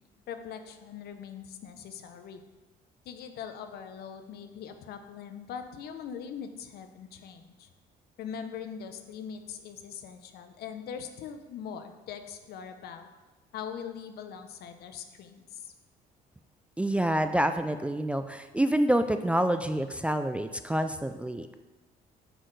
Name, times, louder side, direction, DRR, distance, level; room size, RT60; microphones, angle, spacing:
voice 1, 0.3-2.4 3.1-7.7 8.2-13.1 13.5-15.7, left 7 dB, 70° left, 8 dB, 0.8 m, -41 dB
voice 2, 16.8-21.5, right 1 dB, 5° right, 8 dB, 0.3 m, -27 dB
7.7 x 6.4 x 3.3 m, 1.2 s
cardioid pair, 110°, 17 cm